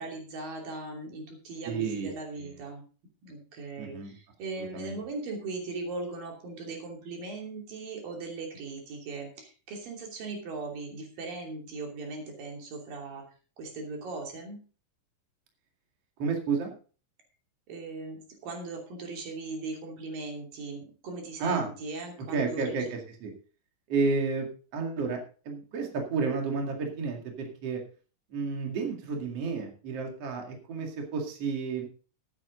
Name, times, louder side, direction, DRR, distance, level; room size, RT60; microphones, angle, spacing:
voice 1, 0.0-2.9 3.2-13.2 13.6-14.6 17.7-22.9, right 3 dB, 85° right, 1 dB, 4.7 m, -39 dB
voice 2, 1.6-2.1 2.4-2.5 3.8-4.2 4.5-5.0 16.2-16.7 21.4-21.7 22.3-23.3 23.9-27.8 28.3-31.9, right 4 dB, 50° right, 2 dB, 3.1 m, -31 dB
14.0 x 9.9 x 3.9 m, 0.38 s
omnidirectional pair, 3.9 m